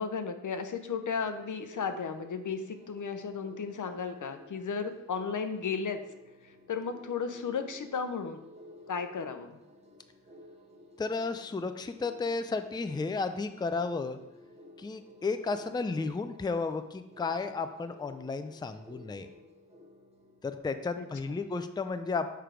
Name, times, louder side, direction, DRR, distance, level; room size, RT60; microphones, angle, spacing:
voice 1, 0.0-6.0 6.4-8.4 8.9-9.5 21.0-21.1, left 5 dB, 75° left, 8 dB, 0.7 m, -34 dB
sound 1, 1.1-20.6, left 1 dB, 20° right, 1.1 m, -54 dB
voice 2, 11.0-14.2 14.8-19.3 20.4-22.3, left 4 dB, 15° left, 9 dB, 0.4 m, -33 dB
6.8 x 4.6 x 5.0 m, 0.91 s
wide cardioid pair, 110°, 30 cm